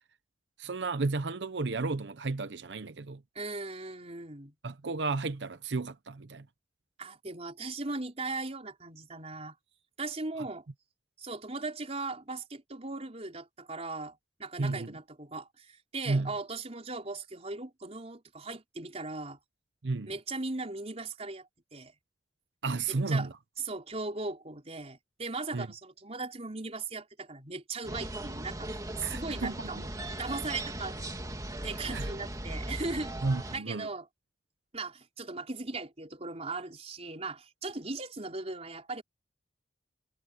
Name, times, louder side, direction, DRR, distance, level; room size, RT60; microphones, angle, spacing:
voice 1, 0.6-3.2 4.6-6.5 14.6-14.9 16.1-16.3 19.8-20.1 22.6-23.3 25.5-25.7 29.0-29.9 31.9-32.1 33.2-33.9, right 3 dB, 75° right, 0.8 m, -32 dB
voice 2, 3.3-4.5 7.0-9.6 10.0-10.6 11.2-19.4 20.1-21.9 22.9-23.3 23.6-29.9 30.2-31.1 31.6-33.1 33.5-34.1 34.7-39.0, right 3 dB, 35° right, 4.4 m, -38 dB
sound 1, 27.8-33.6, right 1 dB, 20° right, 2.5 m, -38 dB
head